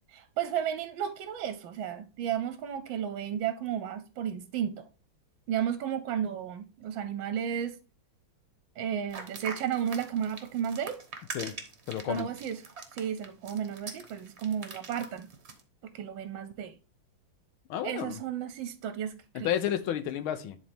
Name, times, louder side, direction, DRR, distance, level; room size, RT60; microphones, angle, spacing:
voice 1, 0.1-4.9 5.5-7.8 8.8-11.0 12.1-12.6 12.9-15.3 15.9-16.7 17.8-19.5, right 9 dB, 75° right, 1.3 m, -33 dB
sound 1, 9.1-15.6, right 4 dB, 40° right, 1.2 m, -43 dB
voice 2, 11.9-12.3 17.7-18.2 19.3-20.6, left 10 dB, 80° left, 1.7 m, -31 dB
10.5 x 4.2 x 3.4 m
omnidirectional pair, 2.3 m